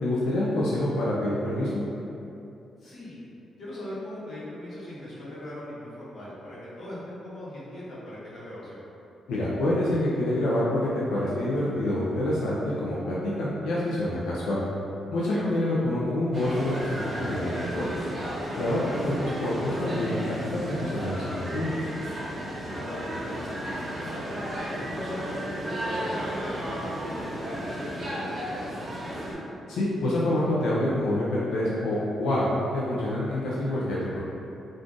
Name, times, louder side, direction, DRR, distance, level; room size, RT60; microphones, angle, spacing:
voice 1, 0.0-1.8 9.3-14.6 15.1-18.0 18.6-21.7 29.7-34.2, left 1 dB, 90° left, -7 dB, 0.4 m, -27 dB
voice 2, 2.8-3.2 3.6-8.8 15.3-15.4 18.6-18.9 22.6-24.2 24.6-29.1, left 1 dB, 65° left, -9 dB, 1.1 m, -40 dB
sound 1, 16.3-29.3, equal, 40° right, 0.8 m, -34 dB
2.5 x 2.4 x 3.6 m, 2.8 s
cardioid pair, 90°, 0 cm